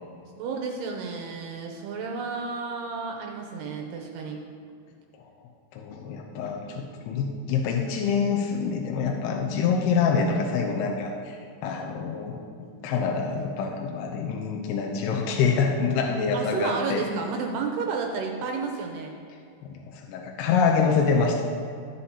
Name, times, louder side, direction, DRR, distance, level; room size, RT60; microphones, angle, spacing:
voice 1, 0.4-4.4 16.3-19.1, right 5 dB, 80° right, 2 dB, 2.5 m, -31 dB
voice 2, 5.7-17.0 19.3-21.6, left 5 dB, 80° left, 1 dB, 2.5 m, -26 dB
15.0 x 8.1 x 2.9 m, 2.3 s
omnidirectional pair, 5.2 m